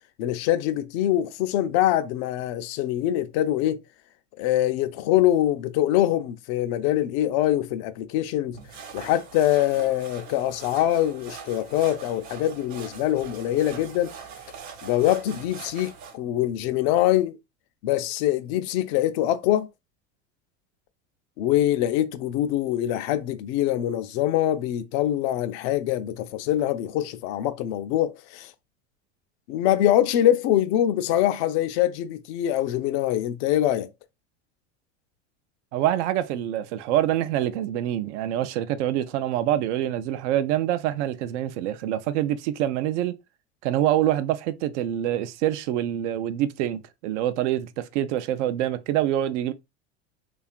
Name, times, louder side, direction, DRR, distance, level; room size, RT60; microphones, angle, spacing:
voice 1, 0.2-3.8 4.4-8.6 8.9-14.1 14.8-17.4 17.8-19.7 21.4-28.5 29.5-33.9, left 12 dB, 55° left, 0.5 m, -24 dB
sound 1, 8.5-16.2, right 6 dB, 50° right, 0.9 m, -42 dB
voice 2, 35.7-43.1 43.6-49.5, right 12 dB, 70° right, 0.5 m, -25 dB
2.8 x 2.4 x 2.4 m
hypercardioid pair, 85°, 37 cm